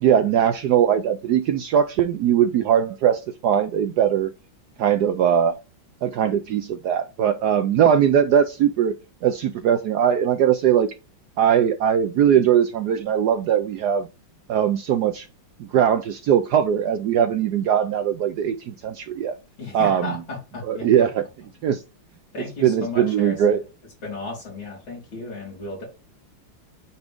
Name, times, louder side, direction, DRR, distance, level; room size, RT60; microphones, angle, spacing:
voice 1, 0.0-4.3 4.8-5.6 6.0-9.0 9.2-10.9 11.4-14.1 14.5-15.3 15.6-19.4 19.7-20.2 20.6-21.2 21.6-21.8 22.6-23.6, right 9 dB, 75° right, 1.0 m, -20 dB
voice 2, 19.6-21.1 22.3-23.6 24.0-25.8, left 3 dB, 70° left, 4.4 m, -34 dB
8.8 x 3.6 x 3.5 m
omnidirectional pair, 2.2 m